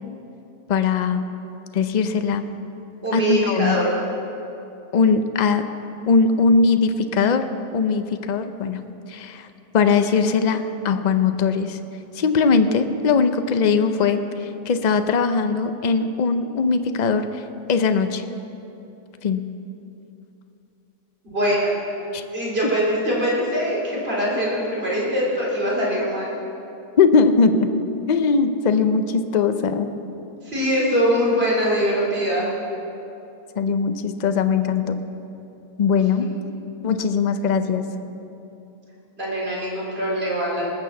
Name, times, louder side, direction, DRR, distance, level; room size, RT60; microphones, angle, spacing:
voice 1, 0.7-1.3 1.7-2.5 3.1-3.8 4.9-5.6 6.1-7.4 7.7-8.8 9.1-9.5 9.7-11.8 12.1-18.2 19.2-19.5 22.1-22.2 27.0-27.7 28.1-29.9 33.6-35.0 35.8-36.3 36.8-37.9, left 5 dB, 75° left, 8 dB, 0.4 m, -20 dB
voice 2, 3.0-3.9 21.3-21.7 22.3-26.3 30.4-32.5 39.2-40.6, equal, 40° right, -6 dB, 3.9 m, -22 dB
19.5 x 6.8 x 7.1 m, 2.8 s
omnidirectional pair, 1.6 m